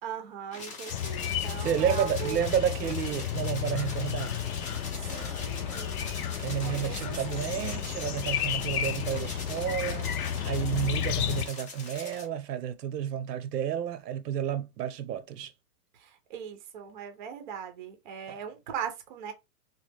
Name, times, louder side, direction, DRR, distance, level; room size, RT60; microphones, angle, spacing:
voice 1, 0.0-2.4 4.9-6.2 6.6-7.6 15.9-19.3, right 8 dB, 30° right, 0.5 m, -40 dB
sound 1, 0.5-12.3, left 3 dB, 20° left, 0.6 m, -42 dB
sound 2, 0.9-11.5, left 9 dB, 65° left, 0.6 m, -32 dB
voice 2, 1.6-4.4 6.4-10.1 10.4-15.5 18.3-18.4, right 9 dB, 90° right, 0.7 m, -31 dB
3.2 x 2.2 x 3.3 m
supercardioid pair, 165°, 47 cm